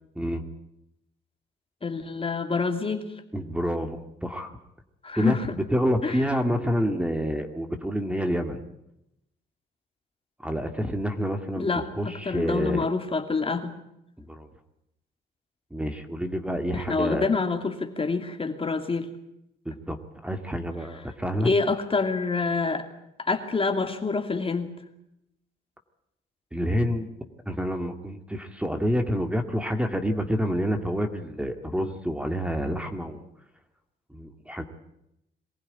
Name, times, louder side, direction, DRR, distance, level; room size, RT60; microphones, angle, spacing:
voice 1, 1.8-3.1 5.0-5.5 6.0-6.2 11.6-13.7 16.7-19.1 21.4-22.9 23.2-24.7, left 4 dB, 30° left, 6 dB, 2.6 m, -27 dB
voice 2, 3.3-4.5 5.1-8.6 10.4-12.9 14.2-14.5 15.7-17.3 19.7-20.0 20.2-21.5 26.5-27.1 27.5-33.2 34.1-34.6, equal, 5° right, 6 dB, 2.3 m, -28 dB
23.5 x 15.5 x 10.0 m, 0.82 s
cardioid pair, 90°, 20 cm